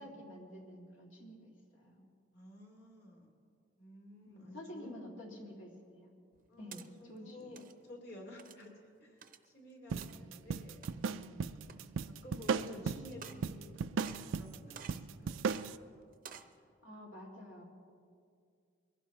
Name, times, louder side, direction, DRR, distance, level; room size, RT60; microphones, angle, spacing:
voice 1, 0.0-2.0 4.3-6.1 6.6-6.8 7.1-7.6 16.8-17.6, equal, 75° left, -2 dB, 2.4 m, -49 dB
voice 2, 2.3-3.3 3.8-5.0 6.5-11.5 11.8-15.6 16.2-16.5, left 1 dB, 50° left, -1 dB, 3.1 m, -53 dB
sound 1, 6.3-6.9 7.4-7.7 8.4-8.7 9.2-9.5 10.0-10.1 10.7-11.2 11.7-11.8 12.4-12.8 13.1-13.7 14.0-14.3 14.7-15.1 15.5-15.7 16.1-16.5, right 7 dB, 40° right, 0.6 m, -50 dB
sound 2, 9.9-15.8, right 5 dB, 80° right, 0.4 m, -37 dB
23.5 x 16.0 x 3.0 m, 2.3 s
head